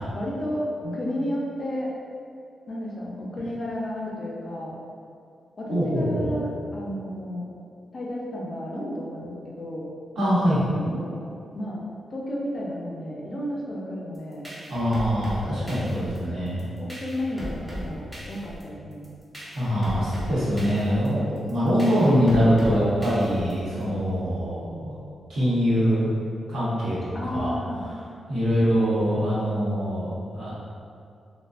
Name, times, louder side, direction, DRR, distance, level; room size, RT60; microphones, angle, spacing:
voice 1, 0.0-0.7 0.9-1.9 2.7-4.8 5.6-7.5 7.9-9.9 10.7-11.8 12.1-14.5 15.4-15.7 16.8-19.0 27.1-27.8, left 1 dB, 45° left, -3 dB, 0.4 m, -32 dB
voice 2, 5.7-6.3 10.2-10.6 14.7-16.6 19.5-24.9 25.3-26.1 26.5-27.5 28.3-30.5, equal, 85° right, -11 dB, 1.0 m, -23 dB
sound 1, 14.1-23.8, equal, 5° right, 0.5 m, -38 dB
2.5 x 2.2 x 2.3 m, 2.4 s
cardioid pair, 110°, 0 cm